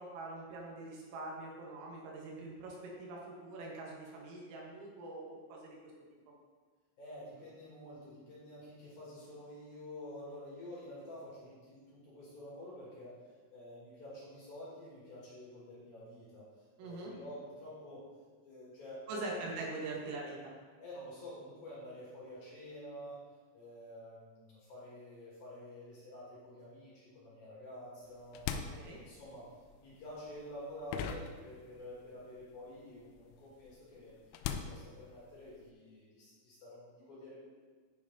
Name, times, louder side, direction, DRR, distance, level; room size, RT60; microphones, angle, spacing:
voice 1, 0.0-5.9 16.8-17.1 19.1-20.5 28.5-29.0, right 2 dB, 90° right, -2 dB, 4.2 m, -43 dB
voice 2, 7.0-13.2 13.5-16.4 16.8-18.0 18.4-19.5 20.8-23.2 23.5-28.4 28.8-29.5 29.8-34.2 34.5-37.4, left 1 dB, 50° left, -9 dB, 3.7 m, -49 dB
sound 1, 28.1-32.1 32.4-35.7, left 8 dB, 90° left, 3.2 m, -43 dB
10.0 x 5.0 x 4.0 m, 1.5 s
omnidirectional pair, 5.8 m